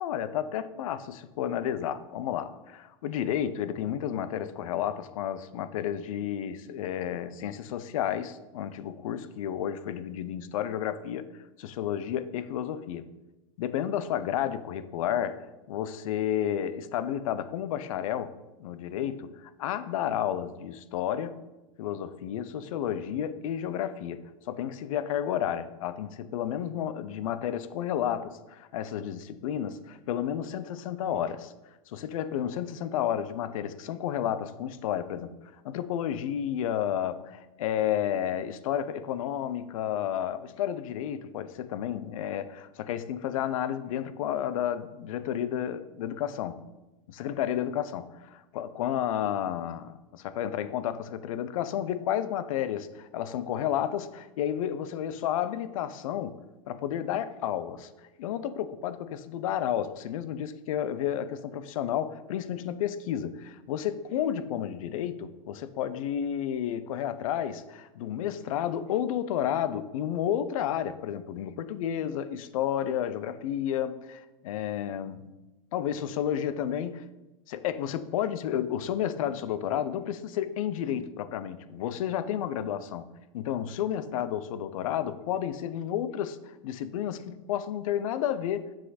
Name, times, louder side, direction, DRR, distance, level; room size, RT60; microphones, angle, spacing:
voice 1, 0.0-13.1 13.6-21.4 21.8-31.5 31.9-35.3 35.6-46.6 47.1-57.9 58.2-75.3 75.7-77.0 77.5-83.1 83.3-86.4 86.6-88.7, left 10 dB, 80° left, 0.6 m, -31 dB
7.6 x 6.1 x 4.1 m
supercardioid pair, 160°, 17 cm